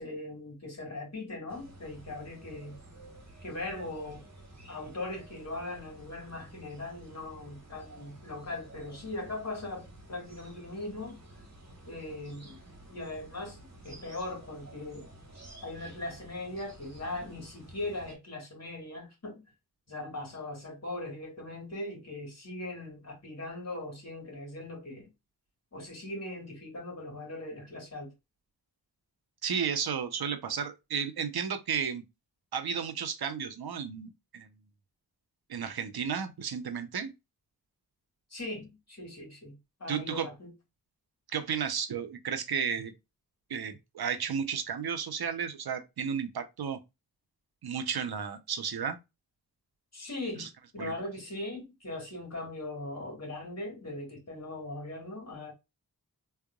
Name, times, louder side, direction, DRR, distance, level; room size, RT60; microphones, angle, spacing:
voice 1, 0.0-2.8 3.4-4.2 4.7-11.2 11.9-12.6 12.9-15.1 15.6-19.4 19.9-25.1 25.7-28.1 38.3-40.5 49.9-50.5 50.7-55.5, left 2 dB, 45° left, 2.4 m, -40 dB
sound 1, 1.5-18.2, right 1 dB, 45° right, 1.5 m, -52 dB
voice 2, 29.4-32.0 32.5-34.5 35.5-37.1 39.9-40.3 41.3-42.9 43.5-46.8 47.6-49.0 50.4-50.5 50.8-50.9, right 7 dB, 85° right, 0.8 m, -33 dB
3.7 x 3.4 x 2.3 m
wide cardioid pair, 75°, 36 cm